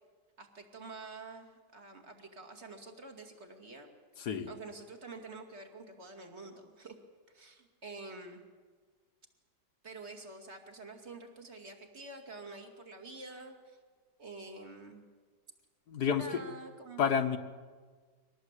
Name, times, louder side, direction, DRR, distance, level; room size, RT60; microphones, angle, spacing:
voice 1, 0.4-4.0 4.5-7.0 7.3-8.4 9.8-13.8 14.2-15.0 16.1-17.0, right 3 dB, 35° right, 4 dB, 2.7 m, -48 dB
voice 2, 15.9-16.3 17.0-17.4, left 7 dB, 60° left, 9 dB, 1.7 m, -29 dB
24.5 x 19.0 x 8.3 m, 1.5 s
omnidirectional pair, 2.0 m